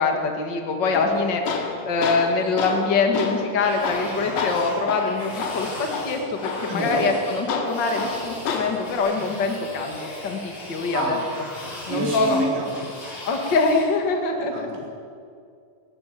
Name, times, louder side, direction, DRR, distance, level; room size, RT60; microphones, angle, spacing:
voice 1, 0.0-1.5 1.8-11.2 11.9-12.4 13.3-14.7, left 4 dB, 85° left, 3 dB, 0.9 m, -24 dB
Tools, 0.9-8.9, left 5 dB, 70° left, 4.0 m, -30 dB
sound 1, 3.6-13.9, left 1 dB, 45° left, 7.4 m, -38 dB
voice 2, 6.7-7.1 10.6-11.2 11.5-12.9 14.3-14.9, right 1 dB, 70° right, -2 dB, 6.4 m, -28 dB
20.0 x 14.5 x 9.2 m, 2.3 s
omnidirectional pair, 5.4 m